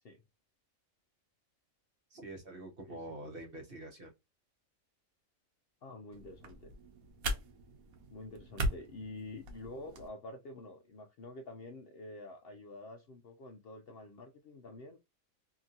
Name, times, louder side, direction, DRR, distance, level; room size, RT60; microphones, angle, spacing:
voice 1, 2.1-4.1, right 1 dB, 45° right, 1.1 m, -46 dB
voice 2, 2.9-3.3 5.8-6.7 8.1-15.0, left 2 dB, 65° left, 0.6 m, -48 dB
sound 1, 6.1-10.1, right 1 dB, 90° right, 1.2 m, -39 dB
2.9 x 2.7 x 2.3 m
omnidirectional pair, 1.4 m